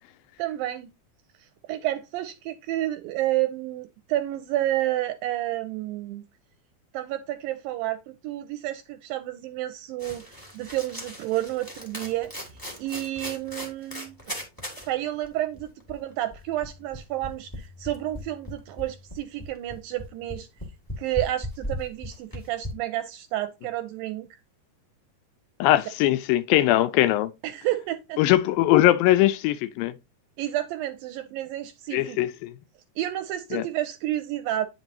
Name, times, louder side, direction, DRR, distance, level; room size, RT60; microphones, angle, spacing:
voice 1, 0.4-0.9 1.4-6.2 6.9-12.3 12.8-14.2 14.9-20.5 21.0-24.4 27.4-28.2 30.4-32.2 33.0-34.7, right 14 dB, 80° right, 2.1 m, -30 dB
sound 1, 10.0-14.9 15.2-15.3 15.5-22.7, equal, 20° left, 0.5 m, -38 dB
voice 2, 25.6-27.3 28.2-29.9 31.9-32.5 33.5-33.6, left 15 dB, 80° left, 2.2 m, -21 dB
9.2 x 5.2 x 2.7 m
omnidirectional pair, 4.4 m